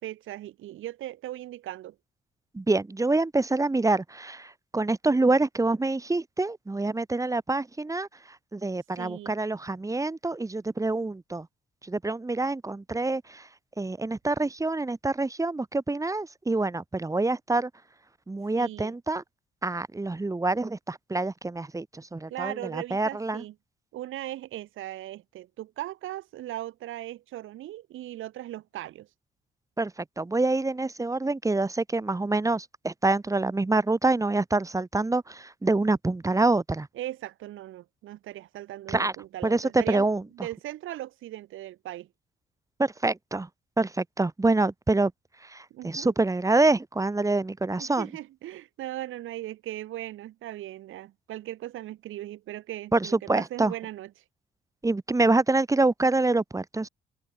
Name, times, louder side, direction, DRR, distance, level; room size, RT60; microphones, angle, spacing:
voice 1, 0.0-2.0 9.0-9.3 18.6-18.9 22.3-23.5 23.9-29.1 36.9-40.1 40.3-42.1 45.7-46.1 47.8-54.1, right 14 dB, 85° right, 7.8 m, -38 dB
voice 2, 2.5-8.1 8.5-11.5 11.9-13.4 13.8-17.7 18.3-19.2 19.6-23.4 29.8-29.9 30.2-36.9 38.9-39.1 39.4-40.2 42.8-43.5 43.8-45.1 45.5-48.1 52.9-53.7 54.8-56.9, right 2 dB, 15° right, 1.7 m, -26 dB
cardioid pair, 90°, 20 cm